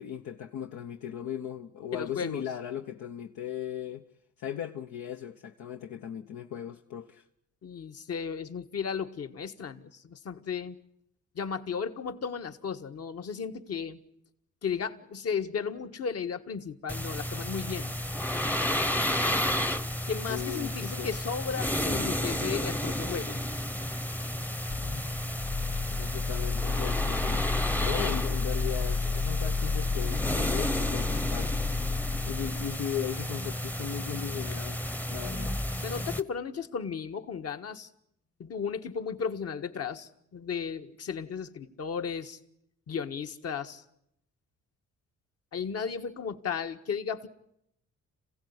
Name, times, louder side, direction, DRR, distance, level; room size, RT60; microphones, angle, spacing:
voice 1, 0.0-4.0 4.4-7.2 20.3-21.1 25.9-27.5 27.8-31.6 32.2-34.8 35.1-35.6, left 10 dB, 75° left, 1.1 m, -37 dB
voice 2, 1.9-2.4 7.6-10.8 11.3-14.0 14.6-17.9 20.1-23.4 35.8-37.9 38.4-42.4 42.9-43.8 45.5-47.3, left 6 dB, 55° left, 1.6 m, -35 dB
sound 1, 16.9-36.2, left 1 dB, 5° left, 0.9 m, -32 dB
sound 2, 24.7-32.9, left 4 dB, 35° left, 1.4 m, -31 dB
27.0 x 16.0 x 9.7 m
cardioid pair, 90°, 30 cm